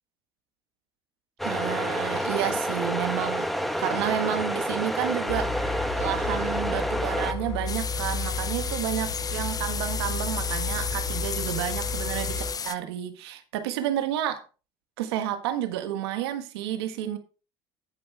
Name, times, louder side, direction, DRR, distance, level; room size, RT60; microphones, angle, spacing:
sound 1, 1.4-7.3, equal, ahead, 1.2 m, -29 dB
voice 1, 1.4-3.5 3.8-14.4 15.0-17.2, right 11 dB, 90° right, 1.5 m, -30 dB
sound 2, 5.3-12.5, left 3 dB, 85° left, 3.4 m, -32 dB
sound 3, 7.7-12.7, left 6 dB, 30° left, 0.6 m, -33 dB
15.5 x 5.5 x 3.3 m
supercardioid pair, 80°, 13 cm